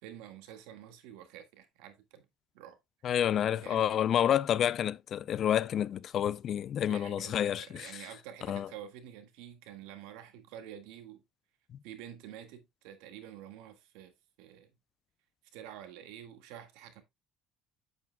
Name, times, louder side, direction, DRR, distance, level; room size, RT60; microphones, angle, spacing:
voice 1, 0.0-2.3 2.5-2.8 3.4-3.9 6.9-11.2 11.8-14.1 14.4-14.7 15.5-17.0, right 10 dB, 85° right, 1.7 m, -48 dB
voice 2, 3.0-7.9 8.5-8.7, left 10 dB, 45° left, 0.5 m, -29 dB
8.8 x 8.4 x 2.2 m
cardioid pair, 125°, 0 cm